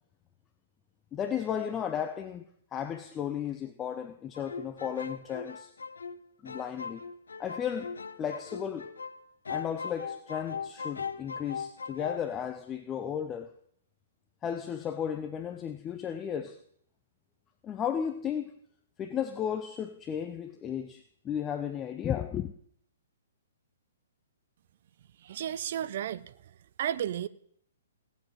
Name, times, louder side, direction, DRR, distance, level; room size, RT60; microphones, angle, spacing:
voice 1, 1.1-2.4 2.7-5.7 6.4-7.0 7.4-8.9 9.5-13.5 14.4-16.6 17.6-18.5 19.0-22.5, left 8 dB, 20° left, 0.7 m, -34 dB
sound 1, 4.3-9.2 9.4-12.2, left 6 dB, 70° left, 0.7 m, -39 dB
voice 2, 25.2-26.3 26.8-27.3, right 10 dB, 50° right, 0.6 m, -33 dB
17.5 x 7.4 x 5.5 m
figure-of-eight pair, 120°, 0 cm